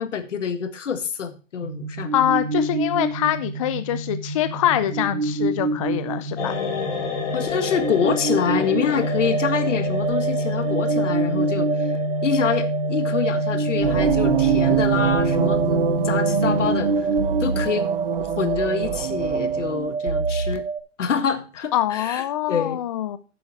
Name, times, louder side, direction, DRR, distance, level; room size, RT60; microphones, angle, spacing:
voice 1, 0.0-2.1 7.3-11.9 12.2-17.1 17.4-17.9 18.4-20.6 21.0-22.8, left 7 dB, 70° left, 10 dB, 1.7 m, -26 dB
sound 1, 1.6-20.8, right 2 dB, 80° right, 1.5 m, -25 dB
voice 2, 2.1-6.5 21.7-23.2, left 12 dB, 30° left, 12 dB, 0.4 m, -24 dB
sound 2, 6.4-16.3 16.6-16.7, left 6 dB, 45° left, 4.0 m, -33 dB
sound 3, 13.8-20.0, right 9 dB, 45° right, 1.2 m, -25 dB
9.8 x 7.9 x 4.5 m, 0.33 s
hypercardioid pair, 135°, 38 cm